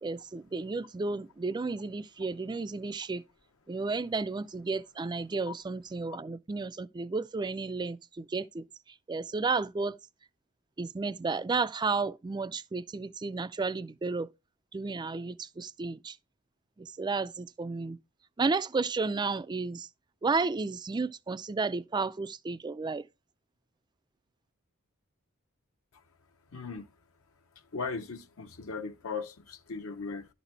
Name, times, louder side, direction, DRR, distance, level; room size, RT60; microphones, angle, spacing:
voice 1, 0.0-3.2 3.7-8.6 9.1-10.0 10.8-14.3 14.7-16.2 16.8-18.0 18.4-19.9 20.2-23.0, right 4 dB, 20° right, 0.3 m, -32 dB
voice 2, 26.5-26.9 27.7-30.3, left 4 dB, 70° left, 0.8 m, -38 dB
11.5 x 4.1 x 4.5 m
head